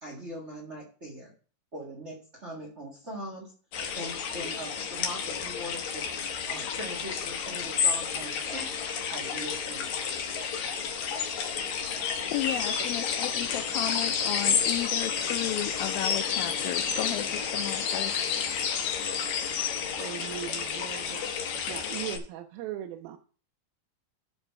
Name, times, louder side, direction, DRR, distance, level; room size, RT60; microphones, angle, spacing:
voice 1, 0.0-1.3 1.7-3.5 4.0-6.1 6.4-8.7 9.1-10.0, equal, 30° right, -2 dB, 1.2 m, -41 dB
sound 1, 3.7-22.2, left 7 dB, 65° left, 2.1 m, -30 dB
voice 2, 12.3-18.1, left 13 dB, 85° left, 8 dB, 2.3 m, -34 dB
voice 3, 20.0-21.2 21.7-23.2, right 12 dB, 85° right, 5 dB, 2.5 m, -39 dB
12.0 x 4.1 x 4.6 m, 0.40 s
omnidirectional pair, 4.2 m